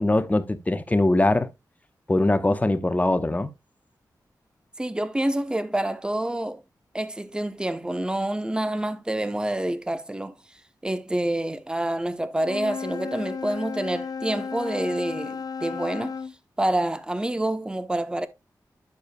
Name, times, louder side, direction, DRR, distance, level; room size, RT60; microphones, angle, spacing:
voice 1, 0.0-1.5 2.1-3.5, left 2 dB, 20° left, 0.9 m, -22 dB
voice 2, 4.8-6.6 6.9-10.3 10.8-16.1 16.6-18.3, right 1 dB, 10° right, 0.8 m, -27 dB
Wind instrument woodwind instrument, 12.4-16.3, left 5 dB, 60° left, 0.4 m, -33 dB
11.0 x 6.8 x 2.3 m
wide cardioid pair, 80°, 7 cm